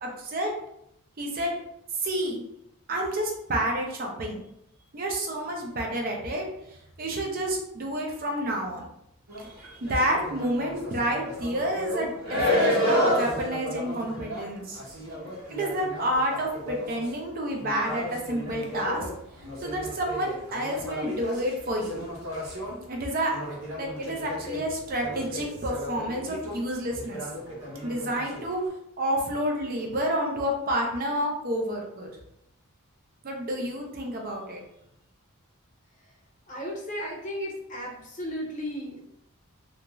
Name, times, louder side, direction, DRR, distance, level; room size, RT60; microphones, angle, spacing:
voice 1, 0.0-0.5 1.2-1.5 2.0-2.4 2.9-4.4 4.9-8.8 9.4-14.8 15.5-19.1 19.6-22.0 22.9-23.4 23.8-27.2 27.8-28.6 29.0-32.1 33.2-34.6, right 1 dB, 40° right, 1 dB, 0.5 m, -29 dB
sound 1, 9.3-28.7, left 1 dB, 70° right, 0.8 m, -32 dB
voice 2, 36.5-39.0, equal, 35° left, -2 dB, 0.7 m, -35 dB
2.4 x 2.3 x 3.0 m, 0.77 s
head